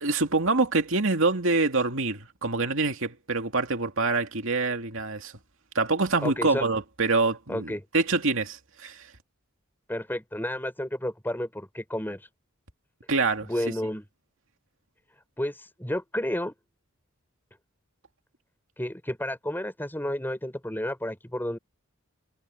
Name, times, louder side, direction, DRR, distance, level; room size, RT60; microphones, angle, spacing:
voice 1, 0.0-5.3 5.7-9.1 13.1-13.5, right 3 dB, 65° right, 2.6 m, -25 dB
voice 2, 6.2-6.7 7.5-7.8 9.9-12.3 13.4-14.0 15.4-16.5 18.8-21.6, left 1 dB, 10° left, 6.3 m, -31 dB
head